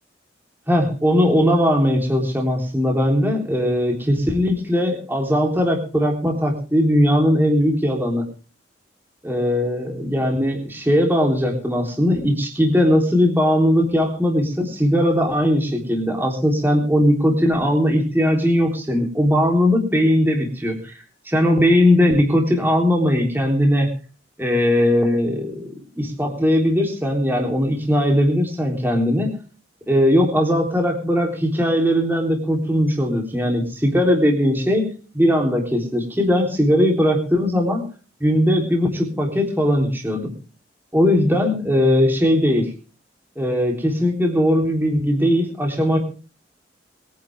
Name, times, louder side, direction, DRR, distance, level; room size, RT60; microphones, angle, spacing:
voice 1, 0.7-8.2 9.2-20.9 21.3-23.9 24.4-29.4 29.9-37.9 38.2-40.3 40.9-42.7 43.4-46.0, equal, 10° right, 0 dB, 3.6 m, -19 dB
22.5 x 11.0 x 3.6 m, 0.37 s
head